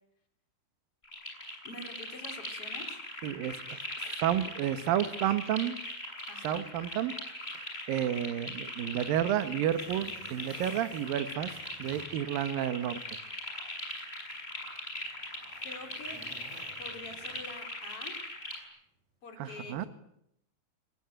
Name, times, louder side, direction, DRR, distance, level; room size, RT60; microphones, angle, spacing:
sound 1, 1.0-18.6, left 1 dB, 15° left, 6.7 m, -40 dB
voice 1, 1.6-3.0 6.3-6.6 15.6-16.2 16.8-18.2 19.2-19.9, left 2 dB, 35° left, 5 dB, 4.5 m, -46 dB
voice 2, 3.2-5.8 6.4-7.1 7.9-11.5 11.8-13.0 19.4-19.8, right 11 dB, 70° right, 11 dB, 2.9 m, -31 dB
Zipper (clothing), 8.6-13.1 13.4-13.5 14.3-17.8 19.0-19.2, right 1 dB, 40° right, 7.7 m, -55 dB
27.0 x 20.5 x 9.1 m, 0.78 s
omnidirectional pair, 4.6 m